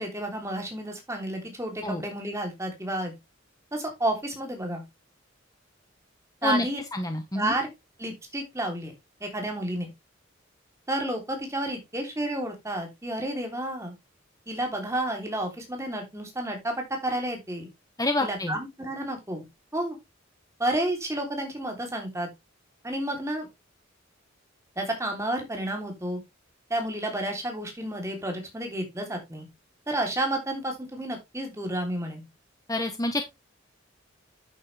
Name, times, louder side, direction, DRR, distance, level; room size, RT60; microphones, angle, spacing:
voice 1, 0.0-3.1 3.7-4.8 6.4-6.8 7.3-7.7 8.0-8.9 9.2-9.9 10.9-13.9 14.5-17.7 18.2-19.4 19.7-20.0 20.6-22.3 22.8-23.5 24.7-26.2 26.7-29.5 29.9-32.3, right 1 dB, 15° right, 3 dB, 3.3 m, -31 dB
voice 2, 6.9-7.5 18.0-18.5 32.7-33.2, left 2 dB, 20° left, 6 dB, 1.1 m, -27 dB
9.6 x 7.1 x 3.4 m, 0.22 s
head